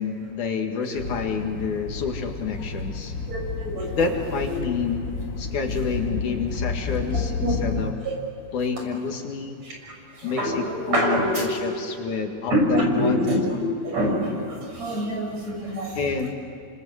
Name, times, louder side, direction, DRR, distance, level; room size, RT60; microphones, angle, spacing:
voice 1, 0.0-3.1 3.9-7.9 8.5-9.6 10.2-13.2 15.9-16.3, left 5 dB, 70° left, 3 dB, 3.4 m, -28 dB
sound 1, 1.0-7.9, left 4 dB, 40° left, 1.4 m, -31 dB
voice 2, 3.3-4.0 4.5-4.6 6.1-6.2 7.1-7.6 8.0-8.2 9.6-11.7 12.5-16.3, equal, 55° right, 0 dB, 7.4 m, -26 dB
28.5 x 25.5 x 8.1 m, 2.5 s
omnidirectional pair, 3.6 m